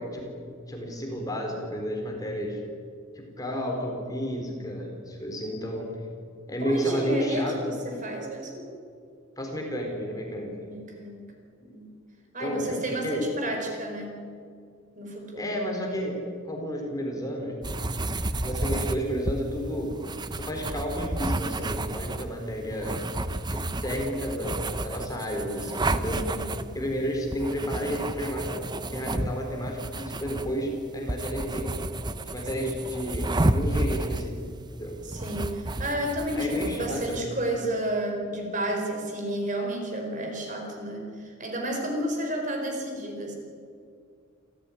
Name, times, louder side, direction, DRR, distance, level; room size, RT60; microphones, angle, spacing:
voice 1, 0.0-2.6 3.1-5.9 6.5-7.6 9.4-10.6 12.4-13.3 15.4-17.6 18.4-20.0 20.3-23.0 23.5-26.4 26.7-28.6 28.9-31.8 32.3-34.4 34.7-35.0 36.4-37.2, equal, 15° left, 1 dB, 4.0 m, -32 dB
voice 2, 6.6-8.7 10.4-11.3 11.6-11.9 12.3-14.2 14.9-15.5 26.1-26.6 35.0-43.4, right 1 dB, 35° right, 2 dB, 4.8 m, -31 dB
sound 1, 17.6-37.2, right 1 dB, 20° right, 0.8 m, -31 dB
28.5 x 14.5 x 9.9 m, 2.3 s
head